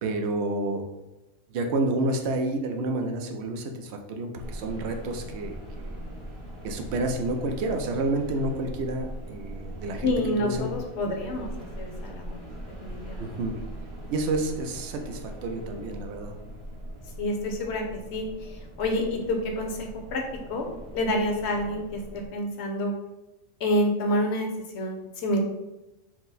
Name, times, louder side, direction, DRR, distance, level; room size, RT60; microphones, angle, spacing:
voice 1, 0.0-0.8 1.5-6.0 6.6-10.1 10.4-10.7 11.0-11.2 13.2-13.6 14.1-16.3, right 2 dB, 60° right, 4 dB, 0.8 m, -29 dB
sound 1, 4.4-22.3, right 1 dB, 25° right, 0.9 m, -40 dB
voice 2, 10.0-11.5 11.8-12.4 12.8-13.4 17.2-20.2 20.5-20.7 20.9-22.0 22.3-22.9 23.6-24.5 24.7-25.4, left 1 dB, 60° left, 1 dB, 0.9 m, -28 dB
4.6 x 2.1 x 3.9 m, 1.0 s
omnidirectional pair, 1.4 m